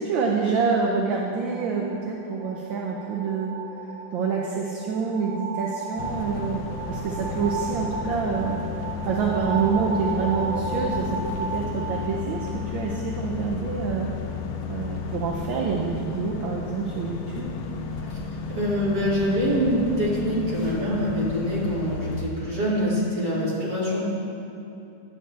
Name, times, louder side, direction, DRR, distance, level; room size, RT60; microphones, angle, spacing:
voice 1, 0.0-3.5 4.1-6.6 6.9-8.6 9.1-14.1 14.7-17.5, right 5 dB, 70° right, -1 dB, 1.3 m, -27 dB
sound 1, 1.2-12.8, right 4 dB, 55° right, 1.3 m, -35 dB
sound 2, 6.0-22.2, left 5 dB, 70° left, 1.2 m, -33 dB
voice 2, 18.5-24.0, equal, 20° right, -9 dB, 2.3 m, -25 dB
10.5 x 7.8 x 3.3 m, 2.7 s
omnidirectional pair, 2.4 m